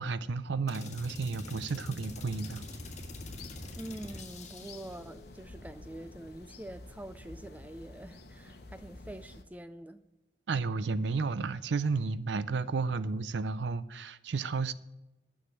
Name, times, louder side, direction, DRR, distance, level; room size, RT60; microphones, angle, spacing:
voice 1, 0.0-2.6 10.5-14.7, right 4 dB, 75° right, 0.5 m, -32 dB
sound 1, 0.7-5.1, left 2 dB, 40° left, 1.5 m, -45 dB
sound 2, 2.1-9.4, left 2 dB, 60° left, 1.0 m, -50 dB
voice 2, 3.8-10.0, right 1 dB, 10° right, 0.3 m, -45 dB
9.9 x 6.4 x 8.7 m
head